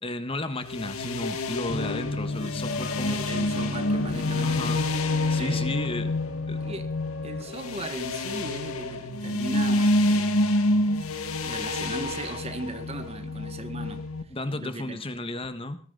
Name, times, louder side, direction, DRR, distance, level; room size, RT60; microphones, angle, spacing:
voice 1, 0.0-3.2 4.4-4.9 5.3-6.1 6.5-6.6 14.3-15.8, left 2 dB, 25° left, 1.5 m, -33 dB
sound 1, 0.6-14.2, left 1 dB, 90° left, 2.1 m, -28 dB
sound 2, 1.7-9.0, left 2 dB, 50° left, 1.7 m, -36 dB
voice 2, 3.1-4.8 5.4-5.9 6.6-7.0 7.2-10.5 11.4-14.1 14.5-15.0, right 2 dB, 30° right, 1.6 m, -37 dB
20.0 x 14.0 x 4.0 m
head